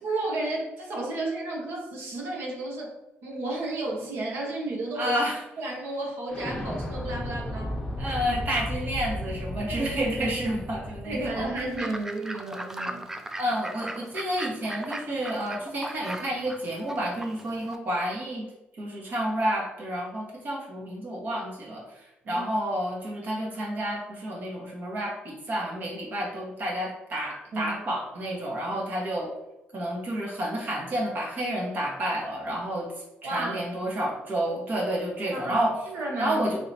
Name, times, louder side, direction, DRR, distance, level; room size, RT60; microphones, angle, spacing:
voice 1, 0.0-2.9 3.2-5.2 5.6-7.8 9.7-10.0 11.1-13.0 22.2-22.4 27.5-27.8 33.2-33.6 35.3-36.4, right 2 dB, 70° right, -1 dB, 1.1 m, -32 dB
voice 2, 4.9-5.4 8.0-11.5 13.4-18.5 18.7-29.3 29.7-32.9 33.2-35.8 36.2-36.6, right 1 dB, 50° right, -2 dB, 1.3 m, -30 dB
Explosion, 6.3-11.8, left 1 dB, 10° left, 1.1 m, -34 dB
Fowl / Bird, 11.6-17.8, right 1 dB, 10° right, 0.3 m, -38 dB
3.8 x 3.1 x 2.7 m, 1.0 s
cardioid pair, 100°, 4 cm